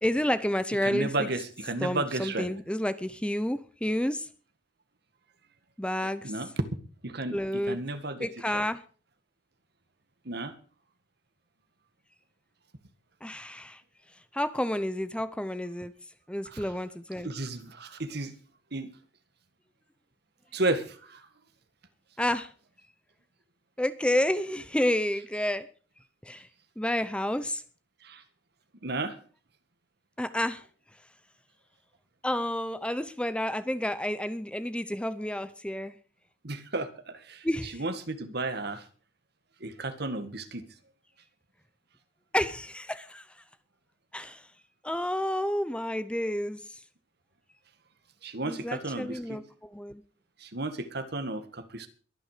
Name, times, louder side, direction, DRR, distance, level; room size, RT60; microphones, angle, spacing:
voice 1, 0.0-1.3 1.8-4.3 5.8-6.4 7.3-7.8 8.2-8.8 13.2-13.8 14.1-15.9 16.3-17.3 22.2-22.5 23.8-25.7 26.2-26.5 26.8-27.6 30.2-30.7 32.2-36.0 37.4-37.8 42.3-43.4 44.1-44.5 44.8-46.8 48.4-50.0, left 1 dB, 5° left, 13 dB, 0.7 m, -30 dB
voice 2, 0.8-2.5 6.2-6.5 7.0-7.4 7.7-8.3 8.5-8.6 10.3-10.5 16.5-16.6 17.2-18.3 18.7-18.9 20.5-21.2 28.0-28.2 28.8-29.2 36.4-38.8 39.6-40.6 48.2-49.4 50.4-51.9, right 2 dB, 55° right, 10 dB, 1.9 m, -33 dB
22.5 x 9.5 x 5.0 m, 0.40 s
head